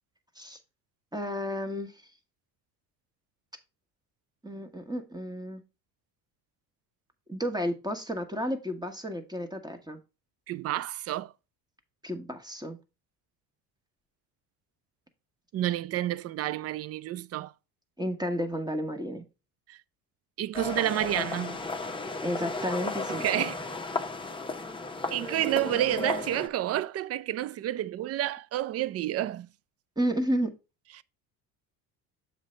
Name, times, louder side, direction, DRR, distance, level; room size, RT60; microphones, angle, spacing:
voice 1, 1.1-1.9 4.4-5.6 7.3-10.0 12.0-12.8 18.0-19.2 22.2-23.2 30.0-30.5, equal, 10° right, 1.3 m, -32 dB
voice 2, 10.5-11.3 15.5-17.5 19.7-19.8 20.4-21.6 23.1-23.6 25.1-29.5 31.0-31.1, right 13 dB, 35° right, 0.4 m, -30 dB
sound 1, 20.5-26.5, left 3 dB, 10° left, 0.8 m, -34 dB
7.3 x 3.4 x 5.1 m
hypercardioid pair, 65°, 48 cm